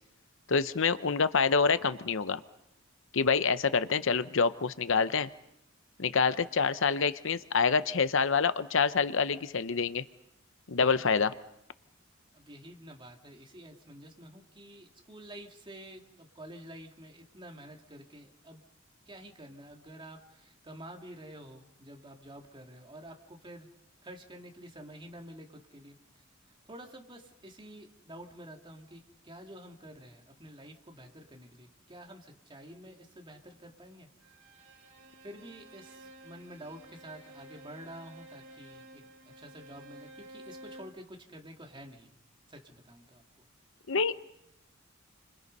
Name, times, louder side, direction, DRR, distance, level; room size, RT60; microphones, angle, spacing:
voice 1, 0.5-2.4 3.1-5.3 6.0-10.0 10.7-11.3 43.9-44.2, left 5 dB, 65° left, 13 dB, 0.8 m, -27 dB
voice 2, 12.3-18.6 19.1-23.7 24.0-26.2 26.6-34.1 35.2-39.1 39.4-42.1 42.5-43.5, right 1 dB, 25° right, 2 dB, 2.9 m, -49 dB
Bowed string instrument, 34.2-41.0, right 1 dB, 80° right, 5.7 m, -52 dB
29.5 x 25.5 x 5.5 m, 0.81 s
head